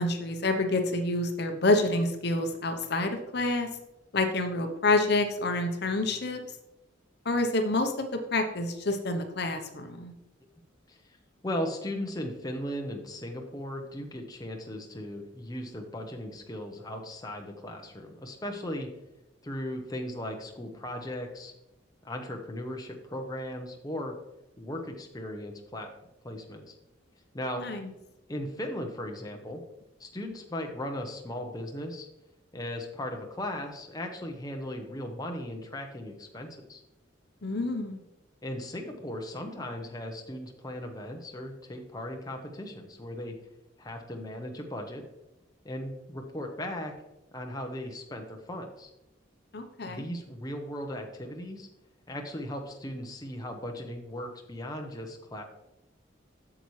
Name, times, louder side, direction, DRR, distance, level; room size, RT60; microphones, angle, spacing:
voice 1, 0.0-3.7 4.1-6.4 7.2-10.1 27.6-27.9 37.4-38.0 49.5-50.1, left 2 dB, 60° left, 6 dB, 0.8 m, -28 dB
voice 2, 11.4-18.9 19.4-21.5 22.0-24.1 24.6-25.9 26.2-26.7 27.3-27.6 28.3-29.6 30.0-32.1 32.5-36.8 38.4-43.3 43.8-45.0 45.6-46.9 47.3-48.9 49.8-51.7 52.1-55.4, left 1 dB, 20° left, 3 dB, 0.9 m, -37 dB
8.5 x 7.0 x 3.2 m, 0.92 s
head